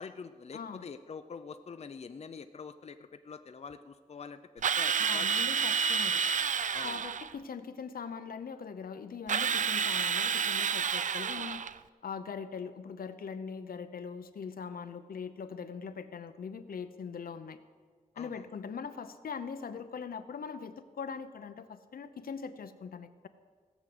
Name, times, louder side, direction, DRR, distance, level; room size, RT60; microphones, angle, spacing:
voice 1, 0.0-5.4 6.7-7.0 18.1-18.5, left 5 dB, 45° left, 9 dB, 0.5 m, -45 dB
voice 2, 0.5-0.8 5.0-6.2 6.8-11.7 12.0-17.6 18.2-23.3, left 6 dB, 80° left, 10 dB, 0.8 m, -41 dB
Drill, 4.6-7.3 9.3-11.8, right 7 dB, 60° right, 0.4 m, -30 dB
17.0 x 6.4 x 7.9 m, 1.5 s
wide cardioid pair, 115°, 15 cm